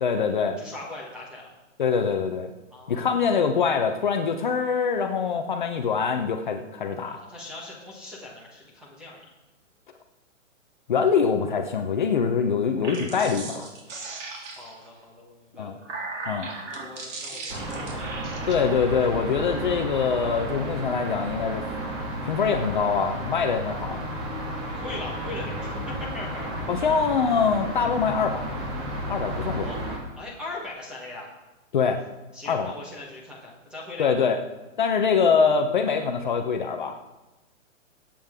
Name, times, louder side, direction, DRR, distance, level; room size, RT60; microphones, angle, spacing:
voice 1, 0.0-0.6 1.8-2.5 2.9-7.2 10.9-13.7 15.6-15.8 16.3-16.5 18.5-21.6 22.2-24.0 26.7-28.4 29.1-29.7 31.7-32.0 32.5-32.7 34.0-34.4 34.8-36.9, left 6 dB, 40° left, 5 dB, 0.9 m, -24 dB
voice 2, 0.6-1.5 2.7-3.5 7.0-9.2 14.4-15.8 16.2-18.0 18.4-18.5 19.1-19.4 24.7-26.7 29.4-29.8 30.2-31.3 32.3-34.1, left 2 dB, ahead, -4 dB, 1.2 m, -40 dB
sound 1, 12.7-14.9 15.5-18.5, right 3 dB, 65° right, 3.6 m, -37 dB
sound 2, 17.5-30.0, right 1 dB, 20° right, 1.9 m, -33 dB
22.0 x 8.7 x 3.6 m, 1.1 s
hypercardioid pair, 175°, 39 cm